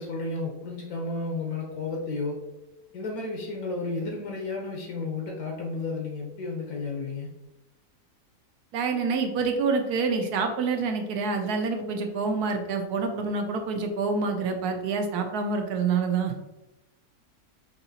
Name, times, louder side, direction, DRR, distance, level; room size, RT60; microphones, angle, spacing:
voice 1, 0.0-2.4 2.9-7.3, left 3 dB, 75° left, 0 dB, 1.2 m, -32 dB
voice 2, 8.7-16.3, right 4 dB, 80° right, 4 dB, 1.2 m, -27 dB
4.9 x 2.7 x 2.7 m, 1.0 s
omnidirectional pair, 1.7 m